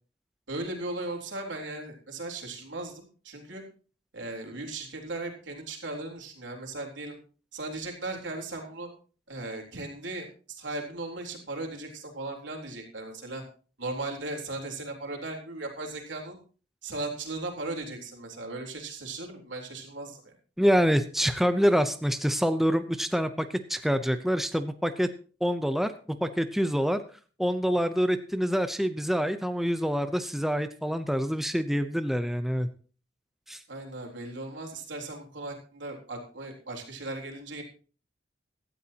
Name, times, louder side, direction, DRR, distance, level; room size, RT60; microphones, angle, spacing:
voice 1, 0.5-3.6 4.1-7.2 7.5-8.9 9.3-13.4 13.8-16.4 16.8-20.3 30.2-30.3 33.7-37.6, right 2 dB, 85° right, 2 dB, 3.7 m, -37 dB
voice 2, 20.6-25.1 25.4-27.0 27.4-32.7 33.5-33.6, equal, ahead, 9 dB, 0.7 m, -26 dB
17.0 x 13.0 x 2.9 m, 0.39 s
head